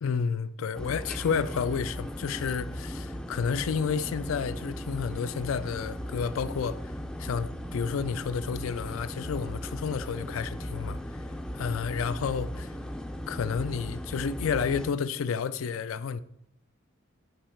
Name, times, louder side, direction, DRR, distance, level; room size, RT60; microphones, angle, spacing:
voice 1, 0.0-6.9 7.2-11.0 11.5-12.7 13.3-16.2, left 6 dB, 80° left, 0.4 m, -30 dB
sound 1, 0.7-14.9, equal, 5° left, 0.3 m, -37 dB
6.7 x 5.4 x 4.4 m
head